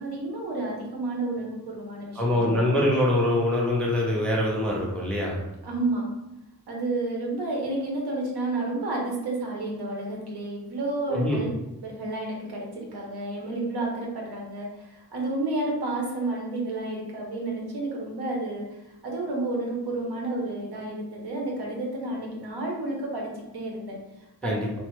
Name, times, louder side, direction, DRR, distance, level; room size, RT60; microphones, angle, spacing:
voice 1, 0.0-2.7 5.6-6.1 6.7-11.5 11.8-24.6, right 2 dB, 80° right, -2 dB, 0.9 m, -31 dB
voice 2, 2.2-5.4 11.1-11.4 24.4-24.7, left 1 dB, 5° left, -3 dB, 0.4 m, -24 dB
3.1 x 2.1 x 3.1 m, 0.93 s
wide cardioid pair, 170°, 39 cm